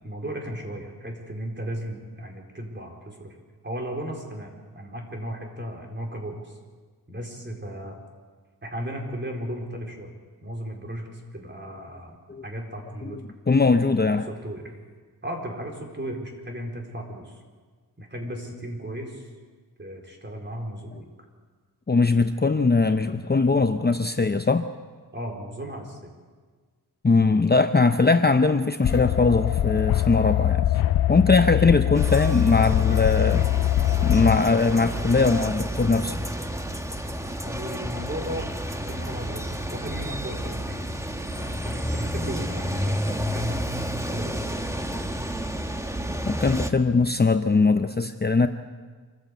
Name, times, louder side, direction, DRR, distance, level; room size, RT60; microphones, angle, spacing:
voice 1, 0.0-3.3 3.6-6.6 7.1-8.0 8.6-10.1 10.4-12.2 12.4-13.2 14.3-14.6 15.2-17.3 18.0-19.3 19.8-21.1 25.1-26.1 31.3-31.7 37.4-38.5 38.9-40.8 41.4-43.7 43.9-44.6, equal, 30° right, 1 dB, 4.3 m, -35 dB
voice 2, 13.5-14.3 21.9-24.7 27.0-30.7 31.1-33.5 34.0-36.2 46.3-48.5, left 4 dB, 25° left, 8 dB, 0.7 m, -21 dB
sound 1, 28.8-34.4, left 13 dB, 65° left, 0.5 m, -23 dB
sound 2, 31.9-46.7, equal, 10° right, 1.3 m, -31 dB
25.5 x 15.0 x 8.3 m, 1.5 s
wide cardioid pair, 85°, 38 cm